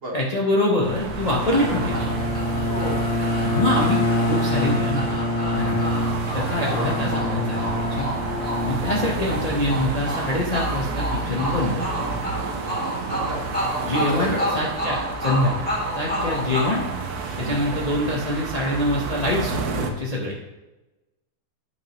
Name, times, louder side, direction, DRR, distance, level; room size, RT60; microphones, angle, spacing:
voice 1, 0.1-2.2 3.4-4.0 4.3-5.2 5.5-6.0 6.3-8.1 8.6-11.8 13.8-15.7 16.0-16.8 17.4-20.3, left 1 dB, 30° left, -4 dB, 0.8 m, -25 dB
sound 1, 0.8-19.9, right 4 dB, 70° right, 1.3 m, -31 dB
Bowed string instrument, 1.1-9.6, left 1 dB, 80° left, 1.4 m, -26 dB
sound 2, 1.5-17.7, equal, 5° left, 2.1 m, -31 dB
voice 2, 2.7-3.1 8.6-8.9 13.1-13.4 14.1-14.4 16.2-16.3 17.3-17.7, right 1 dB, 40° right, -1 dB, 1.2 m, -32 dB
9.3 x 6.2 x 2.9 m, 1.0 s
omnidirectional pair, 1.8 m